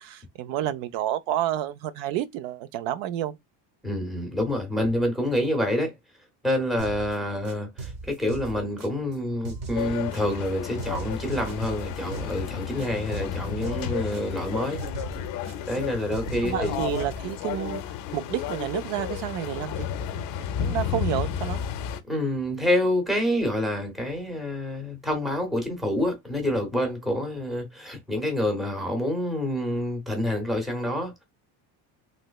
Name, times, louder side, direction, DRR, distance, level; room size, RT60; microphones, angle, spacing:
voice 1, 0.0-3.4 16.4-17.8 18.1-20.3 20.6-21.6, right 12 dB, 75° right, 0.6 m, -30 dB
voice 2, 3.8-5.9 6.4-14.8 15.7-16.8 22.1-31.2, left 1 dB, ahead, 0.6 m, -27 dB
sound 1, 6.8-7.1 7.4-9.2 9.4-10.5 10.8-12.5 12.8-14.5 14.8-15.8 16.1-17.3, right 4 dB, 55° right, 1.0 m, -38 dB
sound 2, 9.7-22.0, left 9 dB, 50° left, 0.5 m, -32 dB
3.3 x 2.9 x 2.2 m
cardioid pair, 170°, 45 cm